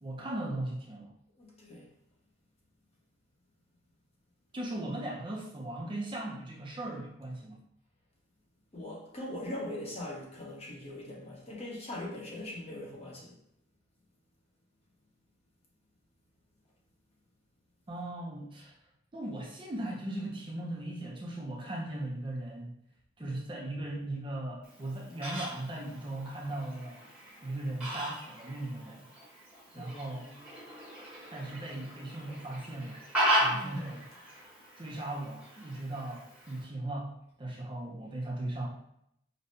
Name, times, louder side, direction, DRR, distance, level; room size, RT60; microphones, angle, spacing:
voice 1, 0.0-1.1 4.5-7.6 17.9-18.7 19.1-22.7 23.2-27.0 27.4-29.1 29.7-30.3 31.3-33.0 33.4-34.0 34.8-38.7, right 1 dB, 25° right, -2 dB, 0.5 m, -38 dB
voice 2, 1.4-1.9 8.7-13.4 23.2-23.4 29.7-30.5 33.5-33.9, left 1 dB, 35° left, -3 dB, 0.8 m, -41 dB
Fowl, 24.6-36.6, equal, 10° right, 1.1 m, -36 dB
5.1 x 2.1 x 2.7 m, 0.75 s
head